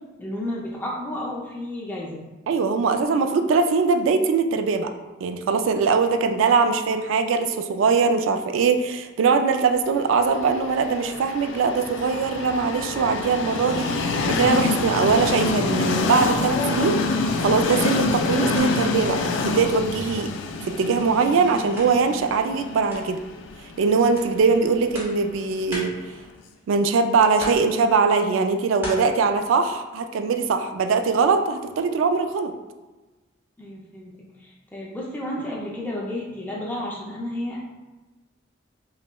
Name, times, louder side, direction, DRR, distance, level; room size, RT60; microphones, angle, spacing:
voice 1, 0.2-2.2 33.6-34.1 34.4-37.6, left 1 dB, 10° left, -4 dB, 0.5 m, -32 dB
voice 2, 2.5-4.9 5.2-17.0 17.4-20.3 20.6-23.2 23.8-25.9 26.7-32.5, right 4 dB, 85° right, 7 dB, 0.3 m, -21 dB
Train, 10.3-26.1, left 4 dB, 75° left, 0.3 m, -27 dB
sound 1, 17.7-18.2 18.5-20.1 20.4-26.9 27.3-29.0, equal, 10° right, 0.8 m, -40 dB
5.5 x 2.1 x 2.2 m, 1.2 s
head